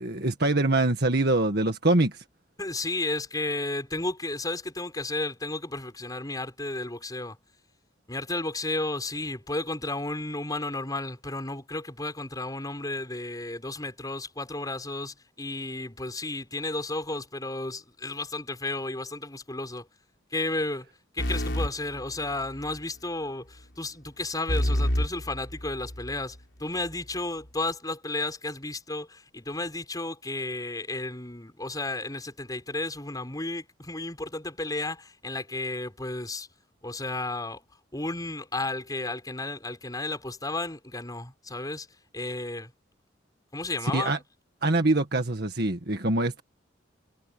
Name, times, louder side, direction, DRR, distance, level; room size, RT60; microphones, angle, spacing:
voice 1, 0.0-2.2 43.9-44.2 44.6-46.4, right 2 dB, 60° right, 1.8 m, -24 dB
voice 2, 2.6-7.4 8.1-19.9 20.3-20.9 21.1-36.5 36.8-37.6 37.9-41.9 42.1-42.7 43.5-44.2, left 2 dB, 20° left, 6.1 m, -33 dB
sound 1, 21.2-22.8 24.5-26.2, equal, 70° left, 4.3 m, -29 dB
head